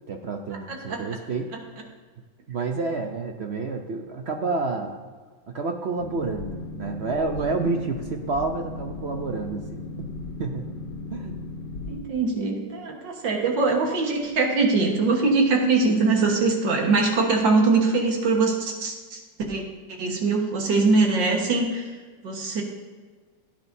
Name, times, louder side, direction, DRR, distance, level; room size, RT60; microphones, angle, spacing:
voice 1, 0.1-1.5 2.5-5.0 5.5-10.1 10.4-10.6 11.1-11.4, right 3 dB, 60° right, 4 dB, 0.7 m, -29 dB
Boat Water vehicle, 6.0-12.0, left 3 dB, 85° left, 1.8 m, -36 dB
voice 2, 11.9-19.2 19.5-19.6 20.0-21.9 22.2-22.6, right 3 dB, 85° right, 1 dB, 2.2 m, -22 dB
16.5 x 9.0 x 2.7 m, 1.5 s
omnidirectional pair, 1.9 m